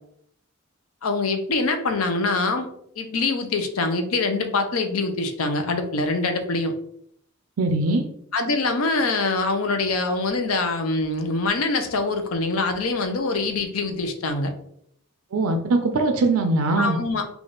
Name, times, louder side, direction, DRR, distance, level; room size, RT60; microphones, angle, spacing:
voice 1, 1.0-6.8 8.3-14.5 16.8-17.2, left 3 dB, 75° left, 7 dB, 0.6 m, -24 dB
voice 2, 7.6-8.1 15.3-17.0, right 2 dB, 85° right, 5 dB, 0.4 m, -21 dB
3.5 x 2.4 x 3.8 m, 0.70 s
head